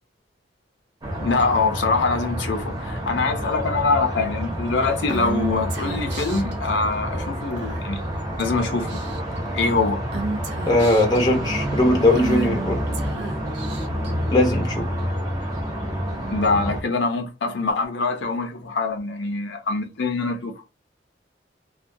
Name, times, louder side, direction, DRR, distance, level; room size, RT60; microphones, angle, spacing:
sound 1, 1.0-16.8, equal, 20° right, 0.6 m, -28 dB
voice 1, 1.2-8.0 8.4-9.0 9.5-10.0 16.3-20.5, left 3 dB, 70° left, 0.5 m, -24 dB
Female speech woman speaking / Whispering, 5.1-6.5 7.6-8.0 8.4-8.6 8.9-9.4 10.1-11.2 12.1-14.1, right 2 dB, 65° right, 0.4 m, -32 dB
voice 2, 10.7-13.0 14.3-14.9, left 1 dB, 20° left, 0.5 m, -19 dB
2.2 x 2.2 x 2.6 m
head